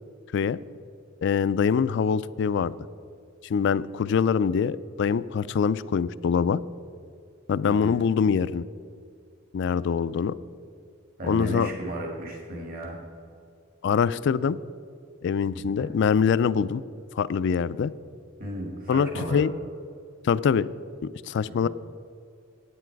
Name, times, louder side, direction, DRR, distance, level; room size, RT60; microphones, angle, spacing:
voice 1, 1.2-2.7 3.4-6.6 7.5-8.6 9.5-10.4 11.2-11.7 13.8-14.6 15.2-16.8 17.2-17.9 18.9-19.5 20.2-20.7 21.3-21.7, left 6 dB, 65° left, 17 dB, 0.3 m, -24 dB
voice 2, 7.6-8.0 11.2-13.0 15.5-15.9 18.4-19.5 21.5-21.7, right 1 dB, 50° right, 0 dB, 2.0 m, -35 dB
9.9 x 9.3 x 4.6 m, 2.4 s
head